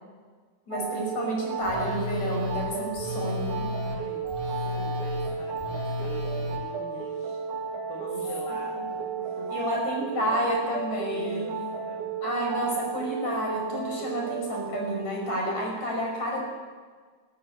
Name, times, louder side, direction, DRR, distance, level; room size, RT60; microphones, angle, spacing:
voice 1, 0.7-3.7 9.5-11.6 12.2-16.4, equal, 40° left, 0 dB, 6.7 m, -30 dB
sound 1, 0.7-15.0, right 6 dB, 85° right, 3.9 m, -33 dB
Telephone, 1.6-6.6, left 2 dB, 10° left, 3.7 m, -33 dB
voice 2, 3.8-4.3 4.6-9.9 11.1-12.2, left 5 dB, 60° left, -1 dB, 4.0 m, -45 dB
21.5 x 13.0 x 10.0 m, 1.5 s
omnidirectional pair, 5.3 m